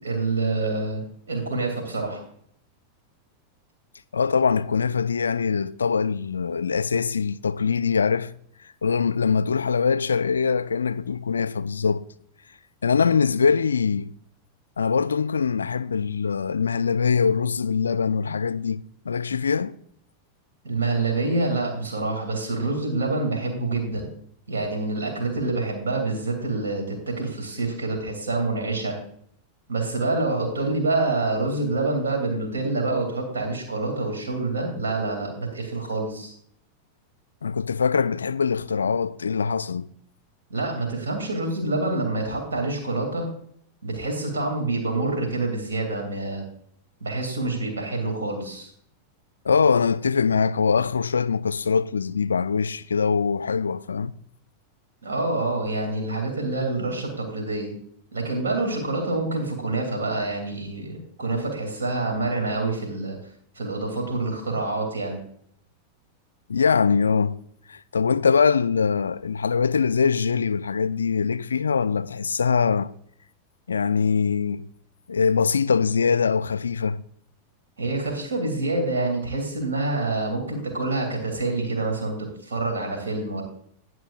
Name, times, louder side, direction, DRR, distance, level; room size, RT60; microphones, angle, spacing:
voice 1, 0.0-2.2 20.6-24.1 24.5-28.9 29.7-36.3 40.5-43.3 43.8-46.4 47.0-48.7 55.0-57.7 58.1-63.2 63.6-65.2 77.8-83.4, right 2 dB, 70° right, 2.7 m, -27 dB
voice 2, 4.1-8.3 8.8-12.0 12.8-14.1 14.8-19.8 37.4-39.9 49.4-54.1 66.5-67.4 67.7-72.9 73.7-74.7 75.1-77.0, left 5 dB, 70° left, 0.3 m, -23 dB
18.0 x 6.1 x 2.5 m
figure-of-eight pair, 90°, 0 cm